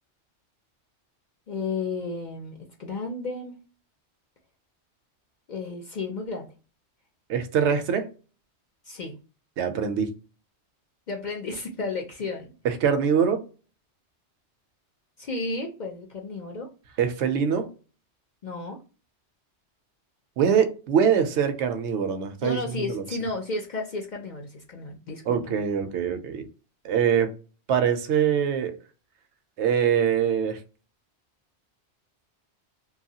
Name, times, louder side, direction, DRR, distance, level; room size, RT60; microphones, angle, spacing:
voice 1, 1.5-3.6 5.5-6.5 8.9-9.1 11.1-12.5 15.2-16.7 18.4-18.8 22.4-25.6, left 3 dB, 55° left, 0.6 m, -33 dB
voice 2, 7.3-8.0 9.6-10.1 12.6-13.4 17.0-17.7 20.4-23.1 25.3-26.5 26.8-27.3 27.7-28.8 29.6-30.6, right 7 dB, 80° right, 0.9 m, -23 dB
2.9 x 2.3 x 2.7 m
omnidirectional pair, 1.2 m